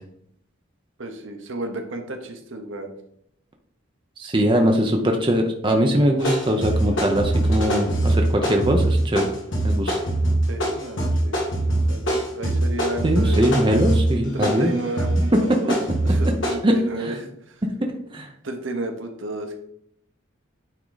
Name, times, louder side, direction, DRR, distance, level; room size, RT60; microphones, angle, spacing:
voice 1, 1.0-2.9 10.5-13.4 14.3-15.7 16.0-17.6 18.4-19.6, right 2 dB, 65° right, 4 dB, 1.0 m, -32 dB
voice 2, 4.2-9.3 9.6-10.0 13.0-14.7 15.3-15.4 16.6-16.7 18.1-18.3, equal, 25° right, 3 dB, 0.7 m, -21 dB
sound 1, 6.2-16.5, right 1 dB, 60° left, 1.9 m, -22 dB
9.2 x 3.7 x 4.0 m, 0.71 s
head